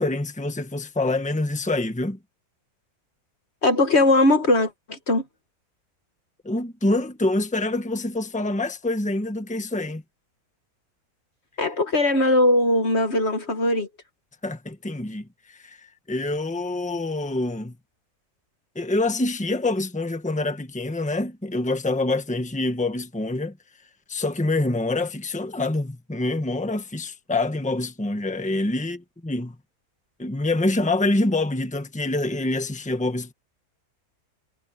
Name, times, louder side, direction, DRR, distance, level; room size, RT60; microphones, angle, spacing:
voice 1, 0.0-2.2 6.4-10.0 14.4-15.8 16.1-17.7 18.7-23.5 24.1-29.6 30.2-33.3, left 2 dB, 5° left, 1.3 m, -26 dB
voice 2, 3.6-5.2 11.6-13.9, left 2 dB, 45° left, 1.6 m, -20 dB
omnidirectional pair, 1.6 m